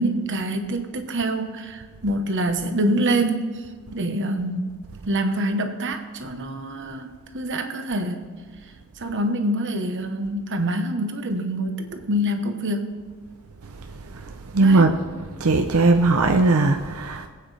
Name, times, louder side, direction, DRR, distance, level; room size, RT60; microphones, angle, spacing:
voice 1, 0.0-3.6 3.9-4.7 5.1-7.1 7.3-8.3 9.0-13.0 14.6-14.9, right 1 dB, 55° right, 6 dB, 1.1 m, -25 dB
voice 2, 14.5-15.0 15.4-17.3, right 3 dB, 75° right, 5 dB, 0.7 m, -18 dB
21.5 x 8.8 x 3.3 m, 1.5 s
head